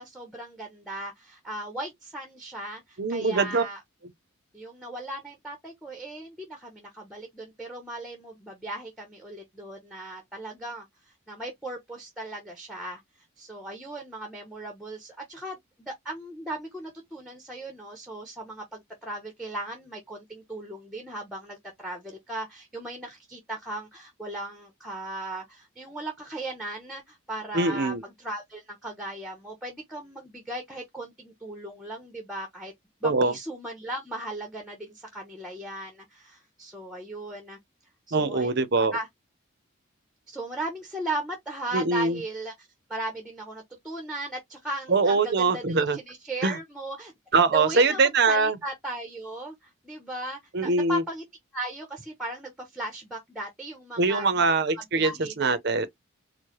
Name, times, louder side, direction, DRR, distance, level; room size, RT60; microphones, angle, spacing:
voice 1, 0.0-3.8 4.5-10.9 11.3-13.0 13.4-32.7 33.0-37.6 38.1-38.5 38.9-39.1 40.3-47.1 47.5-51.2 51.5-54.5 54.9-55.6, right 1 dB, ahead, 0.8 m, -37 dB
voice 2, 3.0-3.6 27.5-28.0 33.0-33.3 38.1-38.9 41.7-42.2 44.9-46.0 46.4-46.6 47.3-48.6 50.5-51.0 54.0-55.9, right 3 dB, 50° right, 0.6 m, -23 dB
4.6 x 2.1 x 3.0 m
head